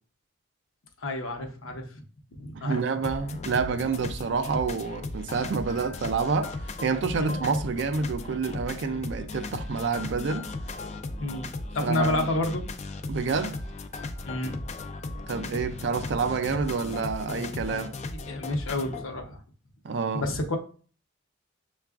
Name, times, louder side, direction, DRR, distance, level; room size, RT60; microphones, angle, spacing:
voice 1, 1.0-2.0 2.4-2.8 7.2-7.4 11.2-11.4 11.7-12.7 14.3-14.5 18.3-19.4 20.1-20.6, left 1 dB, 80° left, 0.7 m, -29 dB
voice 2, 2.5-10.5 11.8-12.3 13.1-13.6 15.3-17.9 19.8-20.3, right 4 dB, 60° right, 0.4 m, -28 dB
sound 1, 3.0-19.0, left 2 dB, 35° left, 0.3 m, -36 dB
6.6 x 2.3 x 2.3 m
head